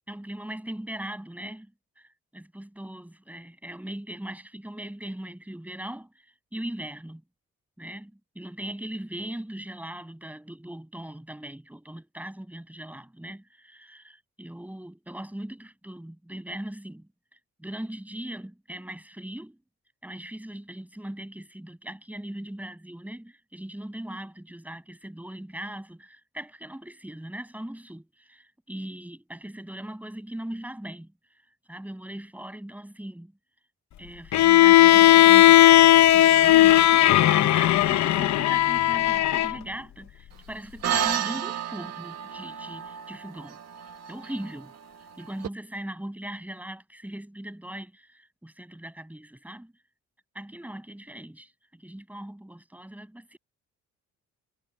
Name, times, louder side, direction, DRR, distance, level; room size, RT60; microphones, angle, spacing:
voice 1, 0.1-6.1 6.5-7.2 7.8-17.1 17.6-19.6 20.0-31.1 31.7-33.3 34.0-43.6 44.1-44.7 45.2-49.7 50.3-53.4, right 1 dB, 5° right, 7.6 m, -39 dB
Bowed string instrument, 34.3-39.5, left 14 dB, 70° left, 1.0 m, -16 dB
sound 1, 40.8-45.5, right 9 dB, 60° right, 1.8 m, -32 dB
cardioid pair, 90°, 30 cm